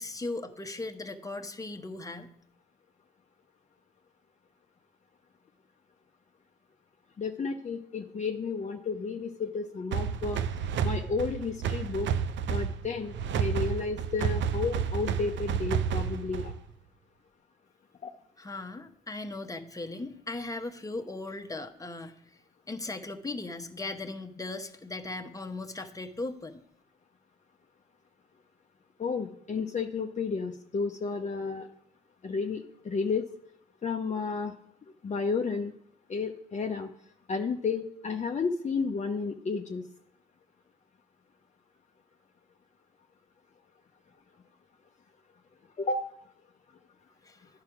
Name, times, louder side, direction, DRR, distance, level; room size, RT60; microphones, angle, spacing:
voice 1, 0.0-2.3 18.4-22.1 22.7-26.6 47.2-47.4, left 2 dB, 15° left, 5 dB, 1.0 m, -38 dB
voice 2, 7.2-10.4 10.8-12.1 12.5-16.6 18.0-18.1 29.0-31.7 32.2-33.3 33.8-34.5 35.0-35.7 36.1-36.9 37.3-39.8 45.8-46.1, left 4 dB, 35° left, 3 dB, 0.7 m, -32 dB
sound 1, 9.9-16.7, right 7 dB, 65° right, 0.6 m, -31 dB
10.5 x 4.8 x 5.9 m, 0.70 s
supercardioid pair, 60°, 20 cm